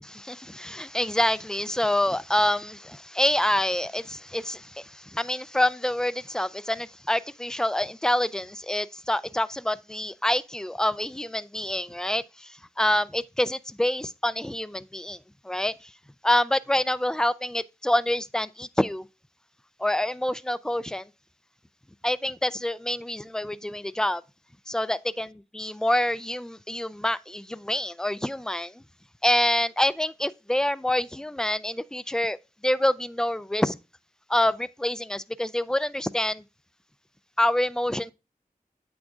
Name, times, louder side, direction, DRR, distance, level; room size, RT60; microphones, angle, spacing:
voice 1, 0.1-15.2 15.4-15.9 16.2-19.1 19.8-21.1 22.0-24.2 24.7-28.8 29.2-32.4 32.6-33.8 34.3-36.4 37.4-38.1, left 1 dB, 5° left, 0.3 m, -26 dB
8.3 x 6.2 x 2.4 m
wide cardioid pair, 60°, 15 cm